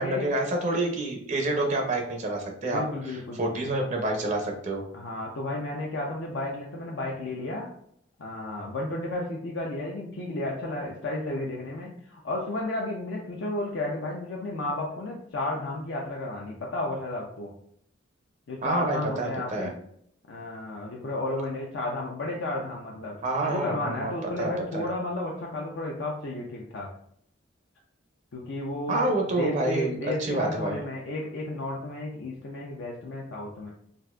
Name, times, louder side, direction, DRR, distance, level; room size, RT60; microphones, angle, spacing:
voice 1, 0.0-4.8 18.6-19.7 23.2-24.1 24.4-24.9 28.9-30.8, right 2 dB, 40° right, 2 dB, 0.5 m, -28 dB
voice 2, 2.6-3.7 4.9-7.7 8.2-17.5 18.5-19.8 20.3-23.2 23.5-26.9 28.3-33.7, left 2 dB, 70° left, -2 dB, 0.5 m, -33 dB
4.0 x 2.4 x 2.3 m, 0.69 s
head